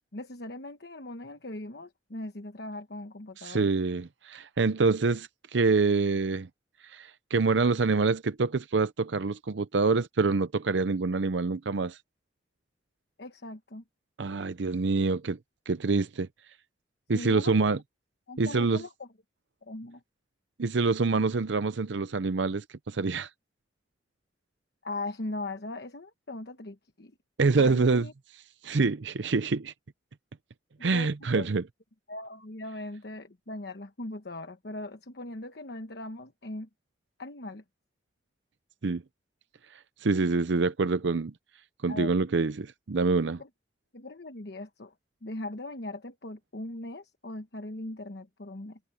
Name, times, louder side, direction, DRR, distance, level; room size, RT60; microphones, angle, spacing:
voice 1, 0.1-3.7 13.2-13.8 17.1-17.7 18.3-19.1 19.6-20.0 24.8-27.1 27.6-28.1 30.8-31.5 32.1-36.7 37.2-37.6 41.9-42.1 43.4-43.5 43.9-44.9 45.2-48.8, left 2 dB, 60° left, 1.2 m, -39 dB
voice 2, 3.4-6.5 6.8-12.0 14.2-15.4 15.7-16.3 17.1-17.8 18.4-18.8 20.6-23.3 27.4-28.1 28.6-29.7 30.8-31.6 38.8-39.0 40.0-41.3 41.8-43.4, right 4 dB, 70° right, 0.6 m, -26 dB
head